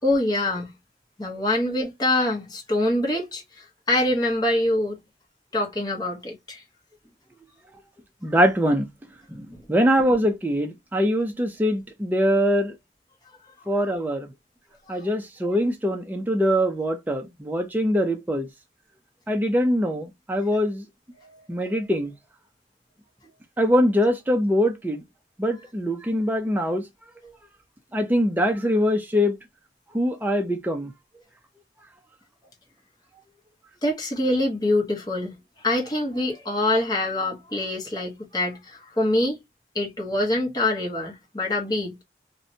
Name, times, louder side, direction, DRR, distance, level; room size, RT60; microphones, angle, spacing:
voice 1, 0.0-0.7 1.2-5.0 5.5-6.6 14.9-15.1 21.2-21.3 33.8-35.4 35.6-39.4 39.7-42.0, left 1 dB, 20° left, 0.7 m, -25 dB
voice 2, 8.2-8.9 9.3-12.7 13.7-14.3 14.9-18.5 19.3-20.8 21.5-22.1 23.6-25.0 25.4-26.8 27.9-29.4 29.9-30.9, equal, 10° right, 0.3 m, -23 dB
2.6 x 2.1 x 2.6 m
head